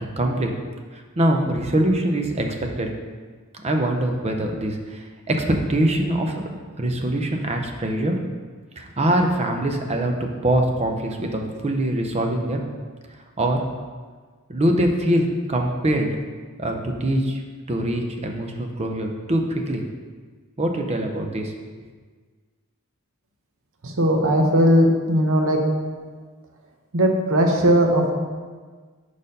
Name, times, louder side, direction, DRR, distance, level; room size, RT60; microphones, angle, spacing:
voice 1, 0.2-0.5 0.9-2.5 2.8-2.9 3.5-5.4 5.7-8.2 8.8-10.2 10.4-12.7 13.4-13.6 14.5-15.2 15.5-16.1 16.6-17.4 17.7-19.9 20.6-21.5, right 1 dB, 30° right, 3 dB, 0.6 m, -23 dB
voice 2, 23.8-25.6 26.9-28.1, equal, 65° right, 2 dB, 0.9 m, -18 dB
5.0 x 4.4 x 5.3 m, 1.5 s
head